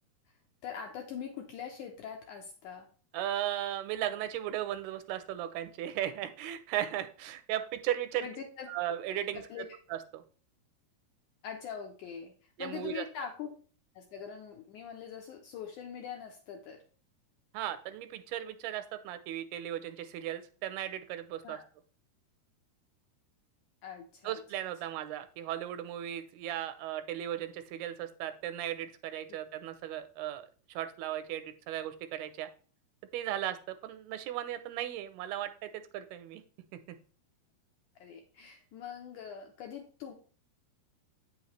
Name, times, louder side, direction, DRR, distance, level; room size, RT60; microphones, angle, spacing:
voice 1, 0.6-2.9 8.2-8.7 9.3-9.7 11.4-12.3 12.6-13.5 13.9-16.8 21.4-21.6 23.8-24.4 37.9-40.1, left 7 dB, 80° left, 2 dB, 1.8 m, -43 dB
voice 2, 3.1-8.3 8.7-9.4 9.9-10.2 12.6-13.0 17.5-21.6 24.2-32.5 33.1-36.4 36.9-37.0, right 12 dB, 85° right, 10 dB, 2.5 m, -36 dB
8.8 x 5.6 x 3.1 m, 0.41 s
omnidirectional pair, 4.5 m